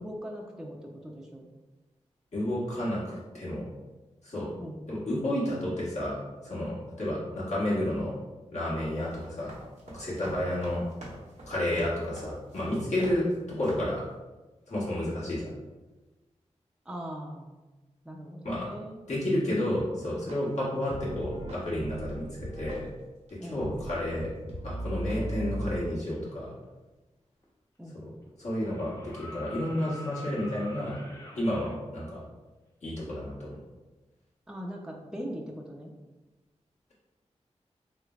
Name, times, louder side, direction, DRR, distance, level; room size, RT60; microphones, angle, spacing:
voice 1, 0.0-1.5 4.6-4.8 7.1-7.2 10.2-10.4 13.2-13.3 16.9-17.6 18.0-19.0 23.4-23.6 27.8-28.0 34.5-35.9, equal, 5° right, -1 dB, 0.5 m, -40 dB
voice 2, 2.3-3.6 4.2-4.5 4.9-8.1 8.5-9.5 9.9-10.9 11.5-14.0 14.7-15.5 18.4-18.7 19.1-22.9 23.4-24.3 24.6-26.5 27.9-28.1 28.4-31.0 31.3-32.2 32.8-33.6, left 1 dB, 65° left, -7 dB, 1.4 m, -31 dB
sound 1, 8.9-13.4 13.6-14.0, right 1 dB, 90° right, 0.8 m, -47 dB
sound 2, 20.3-20.4 20.9-22.9 23.3-23.4 23.6-25.9, right 1 dB, 65° right, 0.8 m, -37 dB
sound 3, 27.4-27.5 28.5-31.8 33.5-33.6, left 1 dB, 25° left, 0.8 m, -45 dB
3.2 x 3.1 x 2.4 m, 1.2 s
cardioid pair, 45°, 12 cm